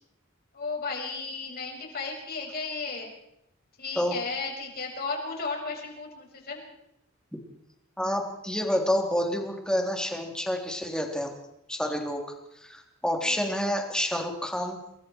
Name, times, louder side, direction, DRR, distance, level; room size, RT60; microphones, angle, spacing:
voice 1, 0.5-3.1 3.8-6.6 13.2-13.4, left 4 dB, 50° left, 1 dB, 6.6 m, -34 dB
voice 2, 8.0-11.3 11.7-12.2 12.6-14.8, equal, 5° left, 2 dB, 3.5 m, -28 dB
28.5 x 22.0 x 4.7 m, 0.80 s
head